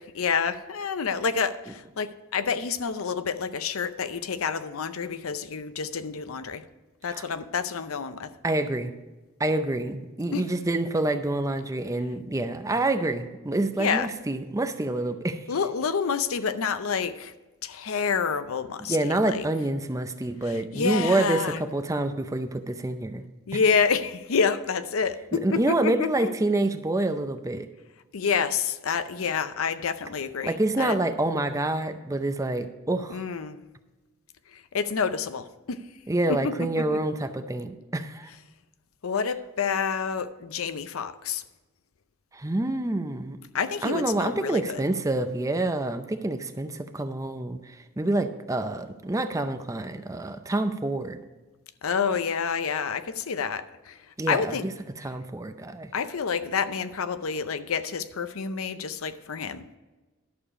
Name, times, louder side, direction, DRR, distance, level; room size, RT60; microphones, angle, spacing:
voice 1, 0.0-6.7 7.0-8.3 10.3-10.4 13.8-14.1 15.5-17.3 17.6-19.5 20.4-21.6 23.5-26.3 28.1-31.0 33.1-33.6 34.5-35.8 36.3-37.0 39.0-41.4 43.5-44.8 51.8-54.0 54.3-54.7 55.9-59.8, left 6 dB, 80° left, 0.6 m, -28 dB
voice 2, 8.4-8.9 9.4-15.4 18.9-23.2 25.4-27.7 30.4-33.2 36.1-38.3 42.3-43.4 43.8-51.2 54.2-54.7 55.0-55.9, right 2 dB, 15° right, 0.5 m, -27 dB
11.5 x 6.9 x 4.8 m
head